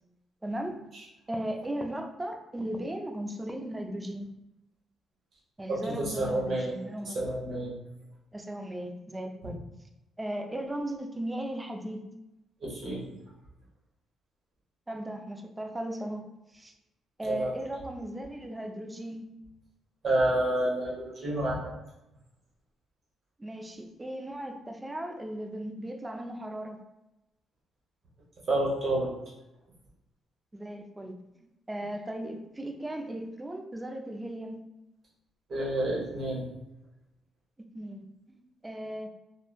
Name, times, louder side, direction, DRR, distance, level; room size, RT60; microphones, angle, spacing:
voice 1, 0.4-0.8 1.3-4.3 5.6-7.2 8.3-9.6 10.2-12.0 14.9-16.2 16.5-16.7 17.2-19.3 23.4-26.8 30.5-34.6 37.6-39.1, right 1 dB, 15° right, 4 dB, 0.3 m, -37 dB
voice 2, 5.7-6.7 7.1-7.8 12.6-13.1 17.2-17.5 20.0-21.6 28.5-29.1 35.5-36.5, right 1 dB, 50° right, -4 dB, 1.0 m, -29 dB
2.9 x 2.1 x 2.3 m, 0.91 s
cardioid pair, 90°, 0 cm